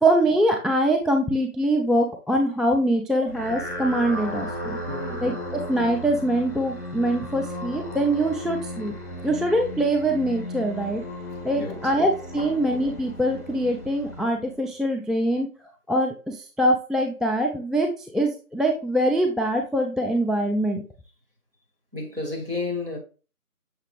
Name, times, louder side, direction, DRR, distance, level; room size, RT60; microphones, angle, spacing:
voice 1, 0.0-4.8 5.2-8.9 9.2-11.0 11.4-15.5 15.9-20.8, right 1 dB, ahead, 0.4 m, -23 dB
sound 1, 3.3-14.7, left 1 dB, 45° left, 1.0 m, -35 dB
voice 2, 4.9-5.3 11.5-11.8 12.4-12.5 21.9-23.0, left 3 dB, 40° right, 1.1 m, -31 dB
6.4 x 3.3 x 2.4 m
figure-of-eight pair, 175°, 46 cm